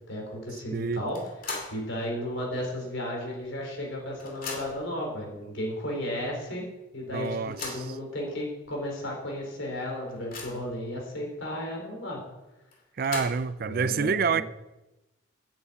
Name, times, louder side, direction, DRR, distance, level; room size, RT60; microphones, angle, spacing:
voice 1, 0.1-1.2 1.7-6.6 6.9-12.2 13.6-14.4, left 1 dB, 75° left, 4.1 m, -34 dB
voice 2, 0.7-1.0 7.1-7.8 13.0-14.4, right 5 dB, 45° right, 0.4 m, -27 dB
sound 1, 1.1-1.9 2.3-2.4 3.4-3.5 3.8-4.9 5.7-5.8 6.2-6.3 7.2-8.0 8.7-8.8 9.1-9.2 9.7-10.8 12.7-13.6, left 3 dB, 45° left, 2.4 m, -39 dB
8.5 x 7.9 x 8.4 m
head